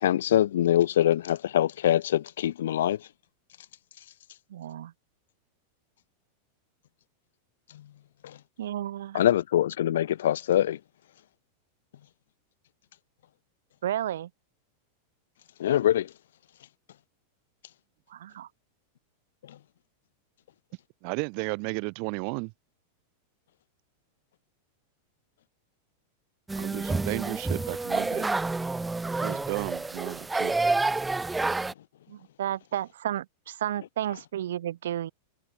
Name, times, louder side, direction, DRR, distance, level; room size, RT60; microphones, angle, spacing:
voice 1, 0.0-3.0 8.2-8.3 9.1-10.8 15.6-16.1, left 11 dB, 85° left, 2.5 m, -24 dB
voice 2, 4.5-4.9 8.6-9.2 13.8-14.3 18.1-18.5 32.1-35.1, right 11 dB, 85° right, 6.2 m, -32 dB
voice 3, 21.0-22.5 26.6-28.3 29.2-30.6, right 40 dB or more, 50° right, 4.5 m, -33 dB
sound 1, 26.5-31.7, right 3 dB, 10° right, 4.7 m, -29 dB
open air
supercardioid pair, 135°, 0 cm